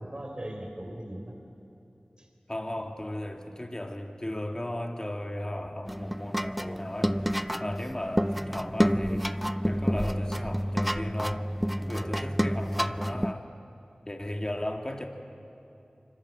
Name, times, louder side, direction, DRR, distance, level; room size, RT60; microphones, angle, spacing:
voice 1, 0.0-1.3 2.2-2.3 11.9-12.5, right 1 dB, 35° right, 2 dB, 4.1 m, -40 dB
voice 2, 2.5-7.2 7.6-9.3 9.7-11.5 11.9-13.5 14.1-15.1, left 1 dB, 25° left, 3 dB, 2.4 m, -35 dB
sound 1, 5.9-13.3, equal, ahead, 0.5 m, -29 dB
27.0 x 25.0 x 7.7 m, 2.9 s
wide cardioid pair, 65°, 3 cm